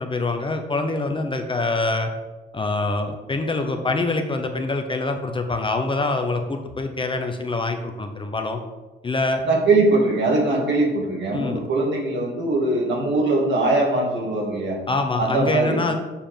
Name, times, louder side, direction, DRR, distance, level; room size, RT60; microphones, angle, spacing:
voice 1, 0.0-2.1 2.5-8.6 9.0-9.4 11.3-11.6 14.9-15.9, left 3 dB, 25° left, 5 dB, 0.9 m, -25 dB
voice 2, 9.4-14.8 15.2-15.8, right 2 dB, 65° right, -2 dB, 2.6 m, -21 dB
7.0 x 4.9 x 5.8 m, 1.2 s
cardioid pair, 90°, 20 cm